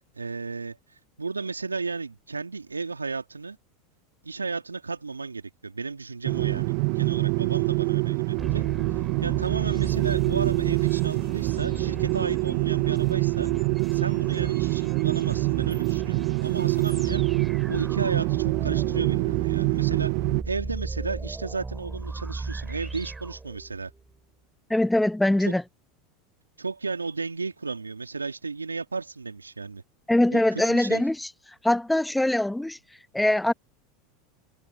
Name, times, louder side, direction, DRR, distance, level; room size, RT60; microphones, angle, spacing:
voice 1, 0.1-0.8 1.2-3.6 4.2-8.6 8.9-13.5 13.9-17.2 17.7-20.1 20.4-23.9 25.4-25.6 26.6-29.8 30.3-31.0, right 4 dB, 90° right, 2.8 m, -33 dB
sound 1, 6.2-20.4, right 33 dB, 55° right, 0.8 m, -25 dB
sound 2, 8.4-24.0, right 3 dB, 15° right, 4.0 m, -37 dB
voice 2, 24.7-25.6 30.1-31.3 31.6-32.8 33.1-33.5, left 1 dB, 5° left, 1.0 m, -22 dB
figure-of-eight pair, 85°, 0 cm